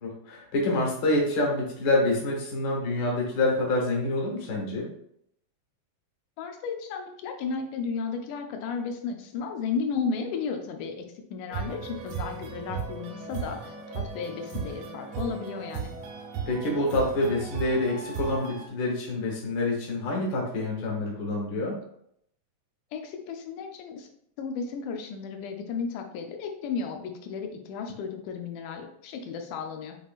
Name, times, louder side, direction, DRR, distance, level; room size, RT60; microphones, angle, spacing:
voice 1, 0.0-4.8 16.5-21.7, left 2 dB, 50° left, -2 dB, 1.5 m, -27 dB
voice 2, 6.4-11.1 11.3-15.9 22.9-24.1 24.4-30.0, left 5 dB, 90° left, 4 dB, 2.2 m, -34 dB
sound 1, 11.5-18.7, right 6 dB, 75° right, 1.5 m, -36 dB
7.3 x 3.0 x 2.4 m, 0.72 s
omnidirectional pair, 3.5 m